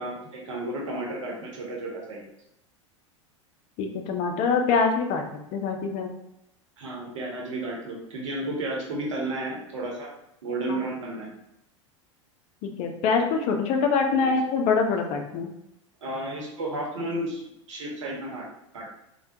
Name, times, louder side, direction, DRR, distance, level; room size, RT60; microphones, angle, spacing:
voice 1, 0.0-2.2 6.8-10.1 10.4-11.3 14.2-14.3 16.0-18.5 18.7-18.9, right 1 dB, 70° right, -1 dB, 0.9 m, -32 dB
voice 2, 3.8-6.1 10.7-10.8 12.6-15.5, left 5 dB, 45° left, 4 dB, 0.5 m, -24 dB
3.3 x 2.3 x 2.8 m, 0.83 s
hypercardioid pair, 85°, 16 cm